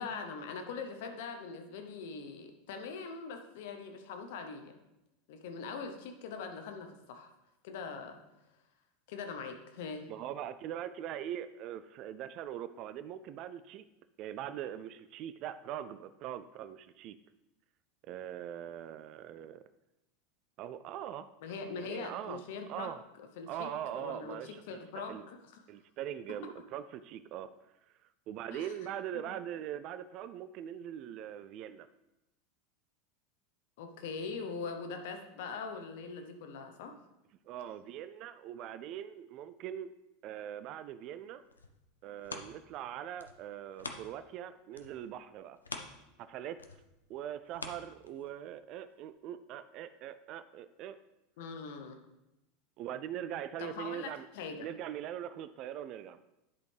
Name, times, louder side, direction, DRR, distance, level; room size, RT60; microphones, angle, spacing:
voice 1, 0.0-4.8 5.3-7.3 7.6-8.2 9.1-10.0 21.4-22.9 23.4-24.4 24.7-25.6 28.5-28.7 29.1-29.3 33.8-37.0 51.4-52.0 53.6-54.7, left 5 dB, 65° left, 5 dB, 0.9 m, -42 dB
voice 2, 10.1-13.8 14.2-17.2 18.1-19.6 20.6-21.3 21.8-22.4 22.7-23.0 23.5-25.2 25.7-27.5 28.3-31.9 37.5-39.9 40.2-41.4 42.0-45.6 46.2-46.6 47.1-51.0 52.8-54.3 54.6-56.2, right 10 dB, 50° right, 12 dB, 0.3 m, -42 dB
sound 1, 41.2-44.4 44.7-48.5 49.0-49.1, left 3 dB, 85° left, 0.5 m, -47 dB
10.5 x 4.1 x 3.4 m, 0.92 s
figure-of-eight pair, 85°, 0 cm